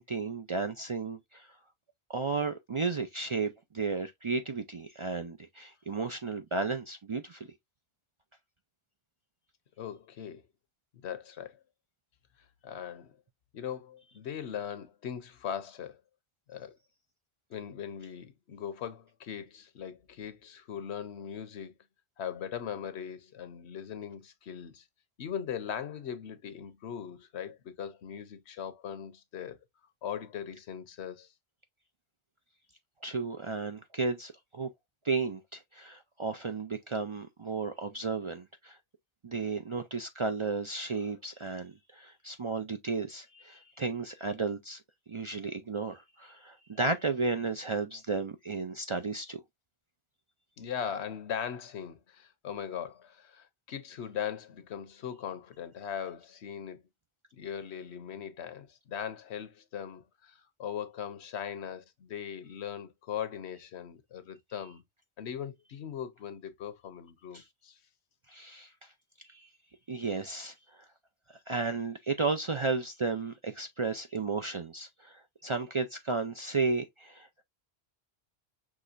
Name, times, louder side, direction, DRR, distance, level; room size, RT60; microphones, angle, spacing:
voice 1, 0.0-1.5 2.1-7.5 33.0-34.7 35.0-38.8 39.2-44.8 45.1-49.4 67.3-67.4 68.3-68.9 69.3-69.5 69.9-70.9 71.5-77.3, right 4 dB, 45° right, 0.4 m, -33 dB
voice 2, 9.8-10.4 11.0-11.6 12.6-13.2 13.5-16.0 16.5-16.8 17.5-21.7 22.2-24.8 25.2-29.6 30.0-31.3 50.6-56.8 57.3-64.8 65.2-67.8, left 8 dB, 85° left, 1.1 m, -39 dB
6.1 x 3.1 x 2.5 m
omnidirectional pair, 1.1 m